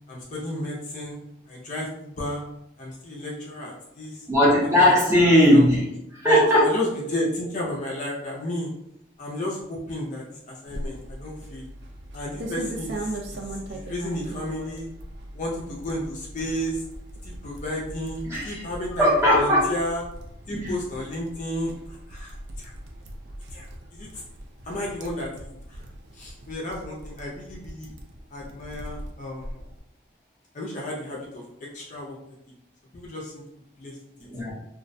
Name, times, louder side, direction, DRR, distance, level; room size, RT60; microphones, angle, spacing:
voice 1, 0.1-1.2 1.5-2.4 2.8-4.3 4.6-4.9 5.5-5.6 6.2-8.7 9.2-11.7 12.1-13.4 13.7-14.9 15.3-16.8 17.2-20.0 20.5-22.7 23.5-24.1 24.7-25.8 26.1-27.9 28.3-29.6 30.5-32.2 32.9-33.4 33.8-34.0, left 1 dB, 35° left, -3 dB, 0.4 m, -33 dB
voice 2, 4.3-5.8 6.1-6.7 18.3-18.6 19.0-19.7 20.5-20.7 34.3-34.5, equal, 15° right, -6 dB, 0.6 m, -18 dB
sound 1, 10.7-29.8, right 1 dB, 55° right, 0.3 m, -40 dB
2.5 x 2.0 x 2.5 m, 0.82 s
head